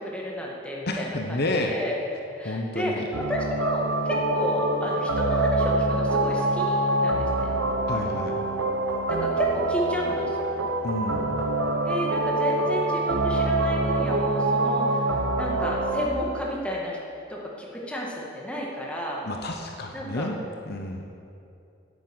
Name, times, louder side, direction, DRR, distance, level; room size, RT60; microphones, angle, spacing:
voice 1, 0.0-2.0 2.4-7.5 9.1-10.5 11.8-17.0 17.3-19.2 19.9-20.3, left 1 dB, 5° left, -3 dB, 2.0 m, -32 dB
voice 2, 0.9-1.8 2.4-3.1 7.9-8.4 10.8-11.3 19.2-20.3 20.7-21.0, left 1 dB, 55° left, 3 dB, 1.0 m, -30 dB
sound 1, 3.1-16.1, right 2 dB, 80° right, 1.0 m, -25 dB
9.9 x 9.2 x 8.8 m, 2.6 s
head